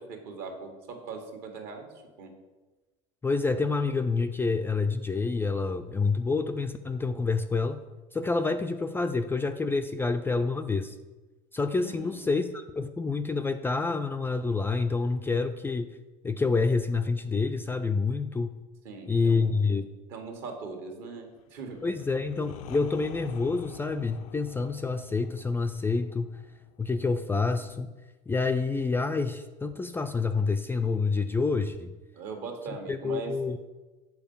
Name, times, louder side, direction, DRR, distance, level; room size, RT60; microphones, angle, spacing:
voice 1, 0.0-2.3 11.8-12.3 18.8-19.5 20.1-22.0 32.1-33.4, right 4 dB, 65° right, 3 dB, 1.6 m, -40 dB
voice 2, 3.2-7.8 8.1-11.0 11.5-15.9 16.2-18.6 19.1-19.8 21.8-26.4 26.8-27.9 28.3-31.9 32.9-33.6, left 4 dB, 10° left, 7 dB, 0.3 m, -28 dB
sound 1, 21.7-27.4, left 11 dB, 80° left, 0.5 m, -47 dB
7.1 x 4.6 x 5.5 m, 1.2 s
supercardioid pair, 100°, 18 cm